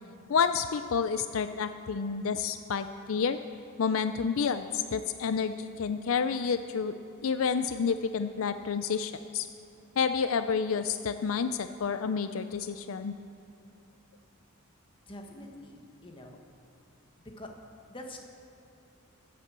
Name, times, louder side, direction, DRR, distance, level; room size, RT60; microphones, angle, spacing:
voice 1, 0.3-3.4 3.8-6.9 7.2-9.5 10.0-13.1, left 6 dB, 70° left, 10 dB, 0.4 m, -29 dB
voice 2, 15.1-16.4 17.2-17.5 17.9-18.2, left 1 dB, 25° left, 2 dB, 1.4 m, -45 dB
14.5 x 8.3 x 7.4 m, 2.8 s
head